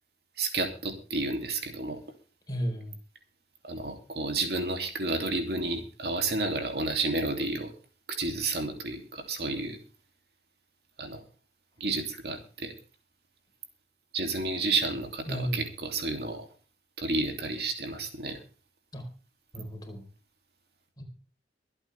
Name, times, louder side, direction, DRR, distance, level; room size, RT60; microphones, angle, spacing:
voice 1, 0.4-2.0 3.6-7.7 8.1-9.8 11.0-11.2 11.8-12.7 14.1-16.5 17.0-18.4, right 3 dB, 60° right, 4 dB, 2.8 m, -31 dB
voice 2, 2.5-3.0 15.3-15.7 18.9-19.1 19.5-20.1 21.0-21.1, equal, 20° left, 2 dB, 4.4 m, -33 dB
24.5 x 8.8 x 3.5 m, 0.37 s
head